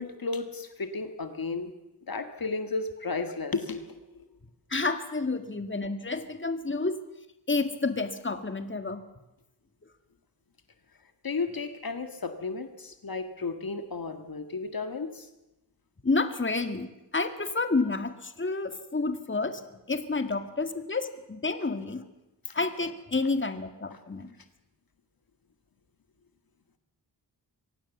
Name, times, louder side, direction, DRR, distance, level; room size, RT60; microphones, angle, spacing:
voice 1, 0.0-1.7 2.1-4.2 11.2-15.3 22.5-22.6 23.9-24.0, left 4 dB, 55° left, 8 dB, 1.8 m, -34 dB
voice 2, 4.7-7.0 7.5-9.0 16.0-22.0 22.5-24.3, left 3 dB, 30° left, 9 dB, 1.9 m, -30 dB
24.0 x 17.5 x 7.3 m, 0.98 s
cardioid pair, 60°, 42 cm